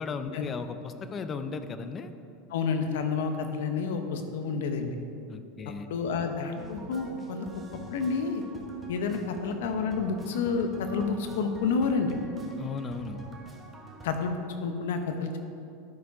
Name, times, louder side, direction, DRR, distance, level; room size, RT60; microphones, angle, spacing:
voice 1, 0.0-2.1 5.3-5.9 12.6-13.2, left 4 dB, 25° left, 9 dB, 0.5 m, -36 dB
voice 2, 2.5-5.0 5.9-7.5 7.9-8.4 8.9-12.1 14.0-15.4, left 5 dB, 85° left, 6 dB, 0.9 m, -29 dB
sound 1, 6.6-14.3, right 2 dB, 15° right, 1.1 m, -46 dB
12.0 x 4.8 x 4.8 m, 2.6 s
supercardioid pair, 150°, 0 cm